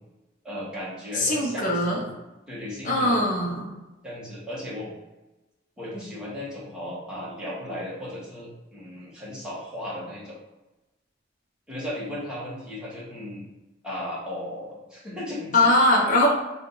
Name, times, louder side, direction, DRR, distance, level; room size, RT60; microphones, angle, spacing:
voice 1, 0.4-2.1 2.4-3.2 4.0-4.9 5.8-10.4 11.7-13.5 13.8-15.7, left 1 dB, 5° right, -8 dB, 1.3 m, -36 dB
voice 2, 1.1-2.0 2.8-3.7 15.5-16.3, left 1 dB, 40° left, -3 dB, 1.0 m, -21 dB
3.6 x 2.7 x 3.8 m, 1.1 s
head